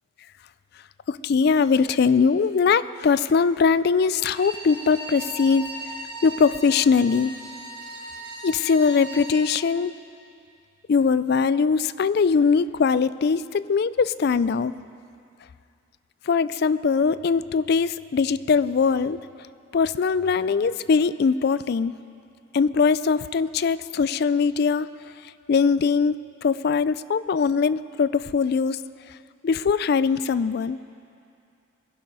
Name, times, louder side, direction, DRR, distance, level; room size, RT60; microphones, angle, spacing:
voice 1, 1.1-5.7 6.2-7.3 8.4-9.9 10.9-14.7 16.3-19.2 19.7-21.9 22.5-24.9 25.5-26.2 26.4-28.8 29.4-30.8, left 5 dB, 50° left, 16 dB, 0.3 m, -21 dB
Bowed string instrument, 4.1-9.4, right 1 dB, 45° right, 2.3 m, -38 dB
21.5 x 12.0 x 5.4 m, 2.5 s
head